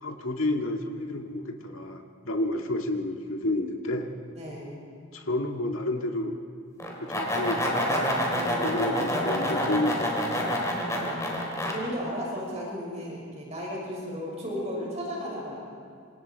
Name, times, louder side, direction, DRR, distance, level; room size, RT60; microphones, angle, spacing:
voice 1, 0.0-4.1 5.1-6.4 7.0-8.1 8.6-10.6, left 1 dB, 75° left, 2 dB, 2.0 m, -30 dB
voice 2, 4.3-4.8 8.3-8.8 10.8-15.6, equal, 35° right, -3 dB, 6.2 m, -35 dB
sound 1, 6.8-11.7, equal, 15° left, 3.8 m, -27 dB
26.5 x 26.5 x 4.7 m, 2.2 s
head